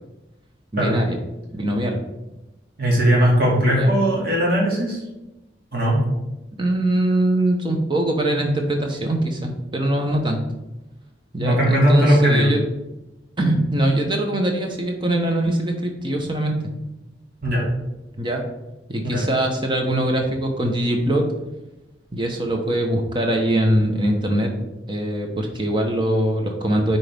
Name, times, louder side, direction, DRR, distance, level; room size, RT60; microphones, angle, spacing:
voice 1, 0.7-1.2 1.5-2.0 3.8-3.9 6.6-10.4 11.3-12.6 13.4-16.5 18.2-18.4 18.9-21.2 22.1-24.5 24.9-27.0, right 1 dB, 25° right, 3 dB, 1.0 m, -22 dB
voice 2, 2.8-5.0 5.7-6.0 11.4-12.5 17.4-17.7 19.0-19.3, equal, 50° right, -4 dB, 2.2 m, -18 dB
9.8 x 4.2 x 3.5 m, 0.98 s
head